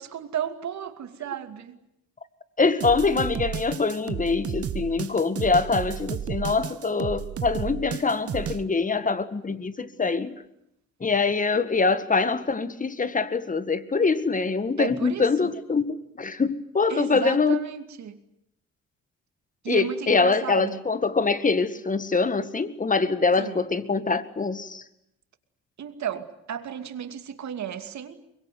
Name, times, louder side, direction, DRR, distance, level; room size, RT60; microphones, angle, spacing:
voice 1, 0.0-1.8 14.8-15.5 16.9-18.2 19.6-20.8 23.4-23.6 25.8-28.2, right 8 dB, 65° right, 2.7 m, -34 dB
voice 2, 2.6-10.4 11.0-17.6 19.7-24.8, left 4 dB, 25° left, 1.9 m, -24 dB
sound 1, 2.8-8.6, right 9 dB, 50° right, 1.3 m, -32 dB
24.0 x 22.5 x 9.4 m
cardioid pair, 90°, 30 cm